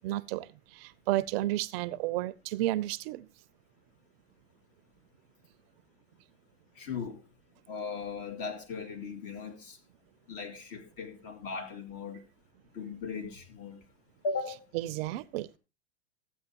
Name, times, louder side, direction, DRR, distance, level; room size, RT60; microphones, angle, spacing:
voice 1, 0.0-3.3 14.7-15.6, right 16 dB, 60° right, 0.6 m, -32 dB
voice 2, 6.7-7.2 7.7-9.8 10.3-12.3 12.7-13.8 14.2-14.7, left 4 dB, 45° left, 2.5 m, -38 dB
14.0 x 8.3 x 2.9 m
hypercardioid pair, 120°, 34 cm